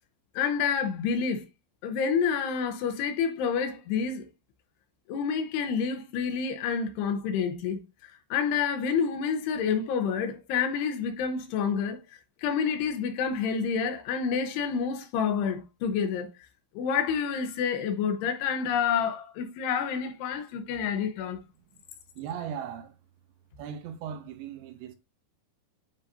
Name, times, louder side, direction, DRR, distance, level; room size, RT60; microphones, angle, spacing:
voice 1, 0.4-1.5 1.8-4.2 5.1-12.0 12.4-16.3 16.8-21.4, left 6 dB, 80° left, 2.8 m, -28 dB
voice 2, 22.2-22.9 23.6-25.0, right 8 dB, 85° right, 2.9 m, -38 dB
9.8 x 4.0 x 2.6 m
omnidirectional pair, 5.0 m